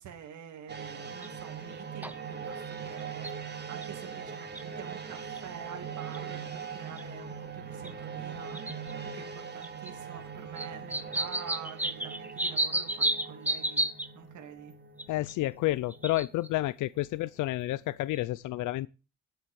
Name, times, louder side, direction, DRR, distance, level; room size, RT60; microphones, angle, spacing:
voice 1, 0.0-13.9 14.1-14.7, right 9 dB, 75° right, 2.6 m, -47 dB
sound 1, 0.7-17.4 17.7-17.8, right 6 dB, 35° right, 2.7 m, -41 dB
sound 2, 1.2-1.3 2.0-2.1 3.0-3.3 3.8-3.9 4.6-4.7 5.4-5.5 6.1-6.2 7.0-7.1 7.9-8.0 8.5-8.9 9.6-9.9 10.6-14.1 15.0-15.3 15.9-16.5 18.2-18.3, right 1 dB, 5° right, 1.2 m, -31 dB
voice 2, 15.1-18.9, left 17 dB, 85° left, 0.6 m, -30 dB
10.0 x 7.9 x 6.8 m
cardioid pair, 90°, 30 cm